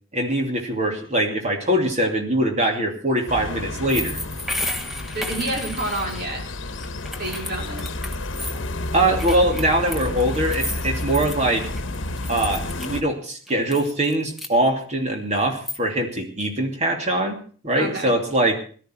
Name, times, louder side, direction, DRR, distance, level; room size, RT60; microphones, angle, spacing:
voice 1, 0.1-4.2 8.9-11.7 12.3-17.4 17.6-18.6, right 1 dB, 35° right, 3 dB, 2.8 m, -22 dB
sound 1, 3.3-13.0, left 2 dB, 65° left, 1.1 m, -30 dB
sound 2, 3.9-6.3 6.8-8.6 9.2-11.4 11.6-13.0 13.5-14.5 15.3-15.8, left 1 dB, ahead, 1.3 m, -33 dB
voice 2, 5.1-6.4 7.2-7.9 17.7-18.1, right 2 dB, 50° right, 1 dB, 4.3 m, -29 dB
17.5 x 13.0 x 4.6 m, 0.42 s
head